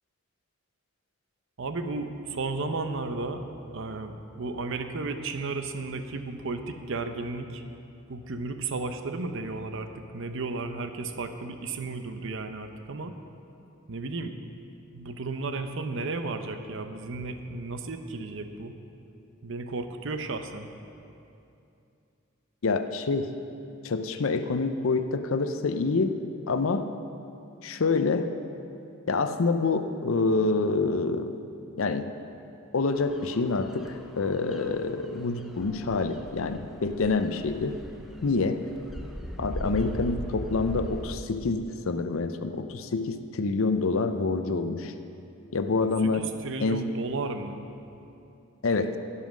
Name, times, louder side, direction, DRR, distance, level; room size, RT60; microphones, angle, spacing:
voice 1, 1.6-3.4 3.7-7.6 8.1-13.1 13.9-14.4 14.9-18.7 19.4-20.7 46.0-47.6, right 3 dB, 65° right, 7 dB, 0.7 m, -34 dB
voice 2, 22.6-23.3 23.8-26.2 26.5-26.9 27.6-28.3 29.1-31.4 31.8-32.1 32.7-37.8 38.2-38.6 39.4-44.9 45.5-46.3 46.6-46.9 48.6-49.0, left 3 dB, 75° left, 9 dB, 0.6 m, -27 dB
sound 1, 32.9-41.1, equal, ahead, 0.7 m, -40 dB
15.5 x 5.6 x 6.2 m, 2.7 s
head